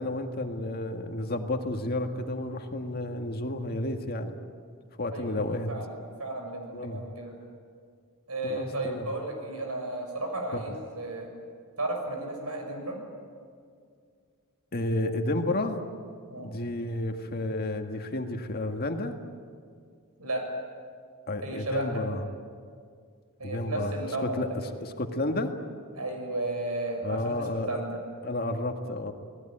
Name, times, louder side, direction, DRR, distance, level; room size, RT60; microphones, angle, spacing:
voice 1, 0.0-4.4 5.0-5.7 6.7-7.0 8.4-9.1 10.5-10.6 14.7-15.8 16.4-19.2 21.3-22.2 23.4-23.9 24.2-24.5 24.8-25.5 27.0-27.7 28.2-29.1, left 1 dB, 45° left, 5 dB, 1.9 m, -31 dB
voice 2, 5.1-7.3 8.3-11.3 11.8-13.0 16.3-16.5 20.2-20.4 21.4-22.0 23.4-24.4 24.6-24.7 26.0-28.0, right 2 dB, 85° right, 3 dB, 6.5 m, -34 dB
29.0 x 19.0 x 8.9 m, 2.2 s
head